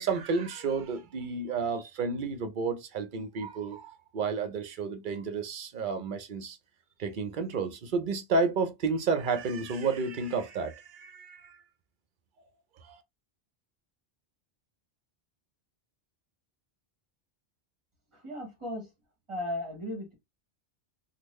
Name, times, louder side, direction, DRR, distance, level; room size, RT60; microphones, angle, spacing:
voice 1, 0.0-6.6 7.0-11.6 12.8-13.0, right 4 dB, 55° right, 0.7 m, -31 dB
voice 2, 18.1-18.9 19.3-20.1, left 1 dB, 30° right, 1.2 m, -36 dB
3.6 x 2.1 x 3.0 m
omnidirectional pair, 1.1 m